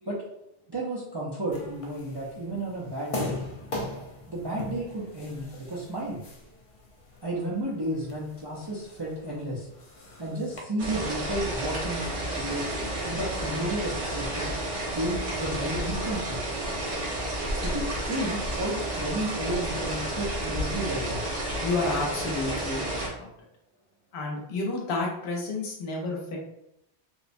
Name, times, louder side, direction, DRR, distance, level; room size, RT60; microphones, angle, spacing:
voice 1, 0.7-3.3 4.3-6.2 7.2-9.7 10.2-12.1 12.4-12.6 13.1-14.5 14.9-16.4 17.6-21.2, right 1 dB, 40° right, -6 dB, 0.3 m, -32 dB
sound 1, 1.5-10.6, left 2 dB, 50° left, 0.4 m, -40 dB
sound 2, 10.8-23.1, right 1 dB, 85° right, 1.2 m, -31 dB
voice 2, 21.6-23.3 24.1-26.4, left 3 dB, 75° left, -1 dB, 0.9 m, -30 dB
2.9 x 2.1 x 2.5 m, 0.80 s
omnidirectional pair, 1.1 m